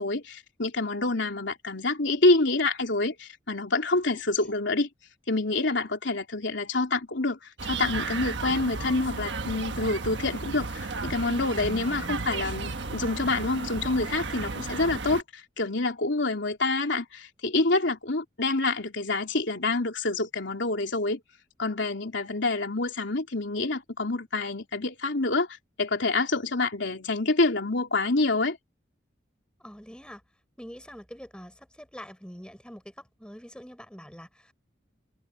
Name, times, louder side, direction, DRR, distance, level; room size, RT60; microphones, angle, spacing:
voice 1, 0.0-4.9 5.3-21.2 21.6-25.5 25.8-28.6, left 2 dB, 80° left, 3.2 m, -27 dB
sound 1, 7.6-15.2, right 3 dB, 70° right, 1.4 m, -34 dB
voice 2, 11.4-12.2 29.6-30.2 30.6-34.5, equal, 5° left, 6.0 m, -44 dB
head